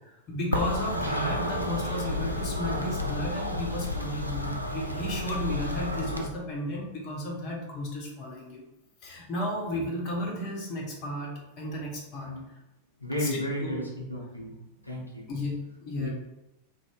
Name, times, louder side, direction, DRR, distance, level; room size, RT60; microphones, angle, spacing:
voice 1, 0.3-8.6 9.0-12.3 13.2-13.8 15.3-16.1, left 1 dB, 40° left, -2 dB, 0.8 m, -33 dB
sound 1, 0.5-6.3, left 1 dB, 90° right, 0.3 m, -31 dB
voice 2, 13.0-14.5 14.8-15.3 16.0-16.1, equal, 85° left, -4 dB, 0.6 m, -33 dB
2.6 x 2.0 x 3.4 m, 0.96 s
figure-of-eight pair, 90°, 0 cm